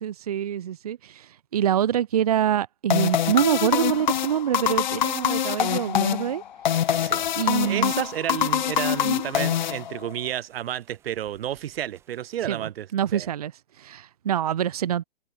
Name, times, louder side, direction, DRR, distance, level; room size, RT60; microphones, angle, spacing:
voice 1, 0.0-6.4 7.3-7.9 9.0-9.2 12.4-13.5 13.8-15.0, right 10 dB, 40° right, 0.6 m, -25 dB
sound 1, 2.9-10.3, left 10 dB, 50° left, 0.7 m, -25 dB
sound 2, 6.8-12.4, right 9 dB, 10° right, 2.0 m, -60 dB
voice 2, 7.0-7.3 7.6-12.9 13.1-13.3, right 11 dB, 80° right, 0.5 m, -31 dB
hypercardioid pair, 175°, 30 cm